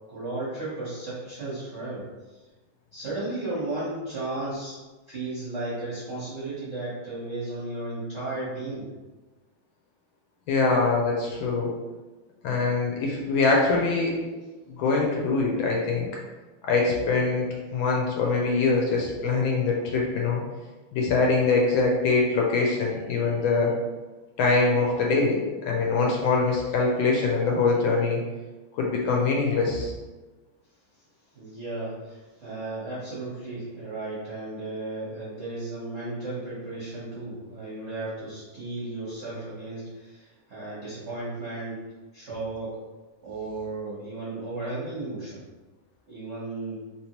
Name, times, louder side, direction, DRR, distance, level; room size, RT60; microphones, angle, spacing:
voice 1, 0.1-2.5 2.9-4.8 5.1-8.9 30.9-31.0 31.3-41.8 42.1-42.8 43.2-45.4 46.1-46.8, right 2 dB, 55° right, -10 dB, 0.8 m, -34 dB
voice 2, 10.5-11.7 12.4-14.2 14.7-16.1 16.6-17.5 17.7-20.4 20.9-23.7 24.4-28.2 28.8-29.9, left 3 dB, 75° left, -1 dB, 1.3 m, -23 dB
3.4 x 2.9 x 2.9 m, 1.2 s
omnidirectional pair, 2.4 m